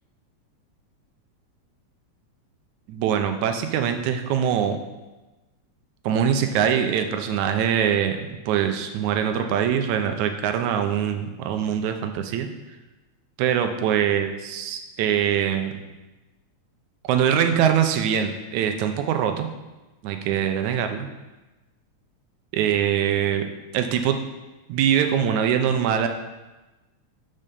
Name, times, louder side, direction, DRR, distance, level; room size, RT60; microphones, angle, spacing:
voice 1, 2.9-4.8 6.0-12.5 13.4-15.8 17.0-19.5 20.0-21.1 22.5-23.4 23.7-24.2 24.7-26.1, right 8 dB, 90° right, 6 dB, 2.1 m, -23 dB
7.3 x 5.5 x 6.8 m, 1.1 s
omnidirectional pair, 3.3 m